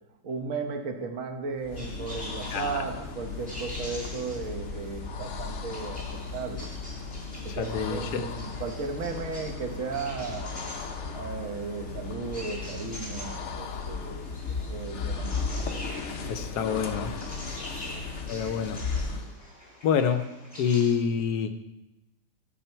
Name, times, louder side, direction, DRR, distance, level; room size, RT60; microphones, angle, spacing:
voice 1, 0.2-6.7 7.4-10.5 11.1-15.4 17.8-18.0, right 4 dB, 55° right, 4 dB, 1.3 m, -35 dB
sound 1, 1.5-19.4, left 4 dB, 50° left, 1.0 m, -36 dB
sound 2, 1.8-20.9, left 1 dB, 25° left, 3.5 m, -45 dB
voice 2, 2.5-2.9 7.5-8.3 16.3-17.1 18.3-18.8 19.8-20.3 20.6-21.5, left 7 dB, 70° left, 8 dB, 1.2 m, -27 dB
11.5 x 7.1 x 4.5 m, 0.97 s
omnidirectional pair, 1.9 m